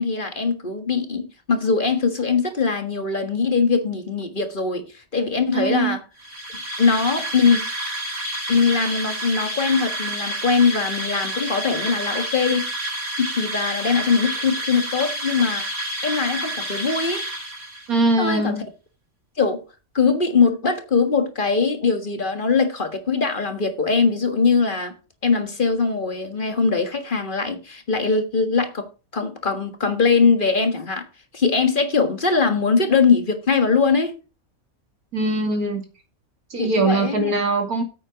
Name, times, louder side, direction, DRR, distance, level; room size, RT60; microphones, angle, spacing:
voice 1, 0.0-4.8 5.1-6.0 6.8-7.6 8.5-12.7 13.2-15.6 16.0-17.3 18.2-18.6 19.4-19.6 19.9-24.9 25.2-28.9 29.1-31.0 31.3-34.2 36.6-37.3, left 5 dB, 35° left, 1.7 m, -21 dB
voice 2, 5.5-6.0 17.9-18.6 35.1-35.8 36.5-37.8, right 2 dB, 85° right, 2.8 m, -22 dB
sound 1, 6.2-18.0, right 1 dB, 55° right, 3.8 m, -29 dB
9.1 x 8.5 x 4.9 m
omnidirectional pair, 1.5 m